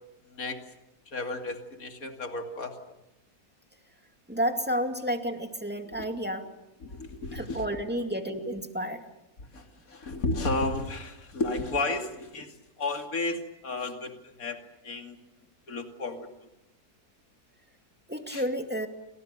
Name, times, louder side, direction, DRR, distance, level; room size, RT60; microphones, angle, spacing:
voice 1, 1.1-2.8 5.9-6.1 6.8-7.8 9.5-15.2 15.7-16.3 18.3-18.4, left 2 dB, 65° left, 4 dB, 3.1 m, -33 dB
voice 2, 4.3-6.5 7.3-9.0 18.1-18.9, equal, 5° right, 5 dB, 2.3 m, -31 dB
29.5 x 25.5 x 6.8 m, 0.91 s
omnidirectional pair, 1.6 m